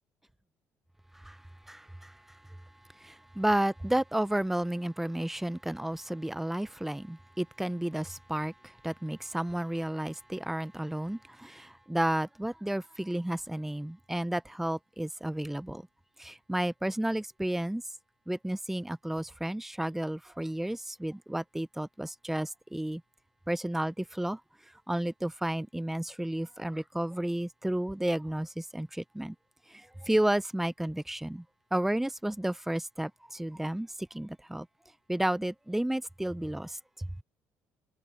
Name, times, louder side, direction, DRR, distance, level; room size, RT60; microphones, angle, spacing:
voice 1, 1.7-2.6 2.9-15.8 16.2-17.8 18.3-23.0 23.5-24.4 24.9-29.4 29.7-31.4 31.7-34.7 35.1-37.1, right 1 dB, 5° right, 0.6 m, -32 dB
cardioid pair, 95°, 6 cm